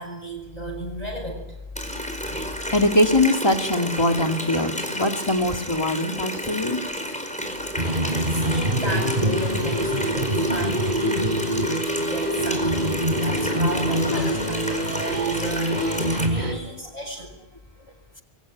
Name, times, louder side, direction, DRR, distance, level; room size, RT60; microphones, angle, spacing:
voice 1, 0.0-1.5 2.3-2.5 8.3-11.4 12.0-12.9 13.2-17.4, right 1 dB, 40° left, 1 dB, 7.5 m, -34 dB
Water tap faucet, 1.8-16.3, equal, 5° left, 4.6 m, -31 dB
voice 2, 2.7-6.8 14.1-15.1, left 1 dB, 25° left, 5 dB, 2.4 m, -23 dB
sound 1, 7.8-16.5, right 1 dB, 45° right, 3.7 m, -24 dB
26.0 x 23.5 x 9.6 m, 1.0 s
omnidirectional pair, 1.0 m